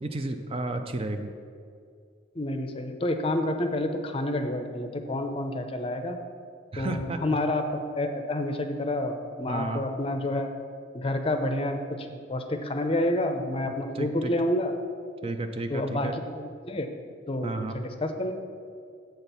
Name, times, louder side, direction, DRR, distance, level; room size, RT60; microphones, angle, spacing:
voice 1, 0.0-1.3 6.7-7.2 9.5-9.8 13.9-14.3 15.2-16.1 17.4-17.8, right 2 dB, 30° right, 7 dB, 0.4 m, -32 dB
voice 2, 2.4-6.2 6.8-7.7 8.0-10.5 10.9-14.7 15.7-16.9 17.3-18.3, left 1 dB, 30° left, 6 dB, 0.5 m, -29 dB
7.9 x 4.4 x 6.7 m, 2.2 s
head